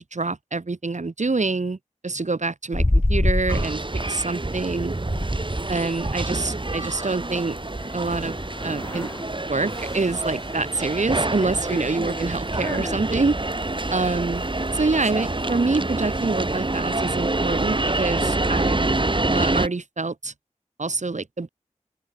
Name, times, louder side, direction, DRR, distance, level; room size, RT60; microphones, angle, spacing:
voice 1, 0.0-1.8 2.0-3.8 4.1-5.0 5.7-7.6 7.9-8.3 8.6-9.1 9.5-13.4 13.9-14.4 14.7-18.8 19.3-20.3 20.8-21.5, right 3 dB, 65° right, 5.8 m, -26 dB
sound 1, 2.7-3.7 4.3-4.4 4.7-15.5, left 1 dB, 20° left, 1.2 m, -30 dB
sound 2, 3.5-19.7, right 2 dB, 40° right, 6.4 m, -27 dB
open air
wide cardioid pair, 65°, 13 cm